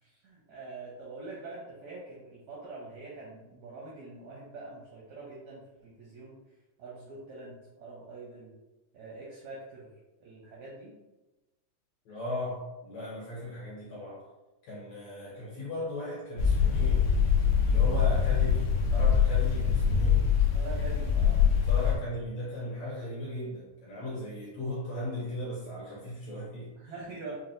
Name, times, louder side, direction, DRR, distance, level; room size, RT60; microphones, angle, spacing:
voice 1, 0.0-6.4 6.8-8.5 8.9-9.9 10.2-11.0 20.5-21.4 26.8-27.4, right 3 dB, 80° right, -6 dB, 1.6 m, -44 dB
voice 2, 12.0-14.3 14.7-17.1 17.6-20.3 21.7-26.9, left 1 dB, 70° left, -6 dB, 1.8 m, -37 dB
sound 1, 16.4-22.0, left 7 dB, 85° left, 1.4 m, -24 dB
6.0 x 2.1 x 2.6 m, 1.0 s
omnidirectional pair, 4.0 m